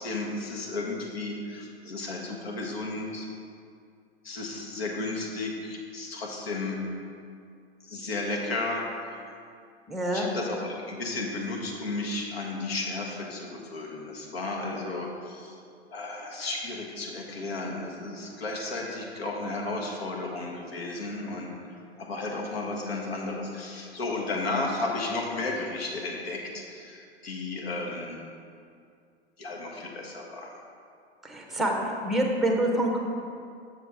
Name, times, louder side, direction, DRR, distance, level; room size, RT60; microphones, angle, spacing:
voice 1, 0.0-3.3 4.2-6.8 7.8-9.3 10.1-15.6 15.9-28.2 29.4-30.5, left 2 dB, 65° left, 0 dB, 1.5 m, -33 dB
voice 2, 9.9-10.3 31.2-31.7 32.0-33.0, right 1 dB, ahead, 1 dB, 0.8 m, -26 dB
7.3 x 6.6 x 3.5 m, 2.4 s
figure-of-eight pair, 100°, 33 cm